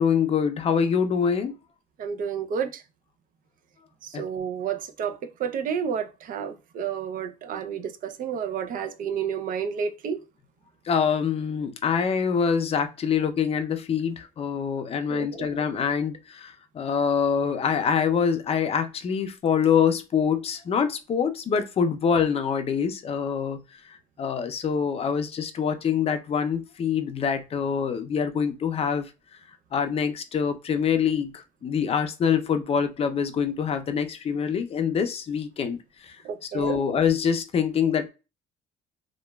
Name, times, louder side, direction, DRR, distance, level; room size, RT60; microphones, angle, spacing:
voice 1, 0.0-1.5 4.1-4.2 10.9-23.6 24.2-29.0 29.7-35.8 36.0-36.2 36.5-38.1, left 7 dB, 35° left, 0.5 m, -25 dB
voice 2, 2.0-2.8 4.0-10.2 15.1-15.3 36.2-36.8, right 7 dB, 55° right, 0.5 m, -30 dB
2.9 x 2.3 x 2.2 m
cardioid pair, 110°, 17 cm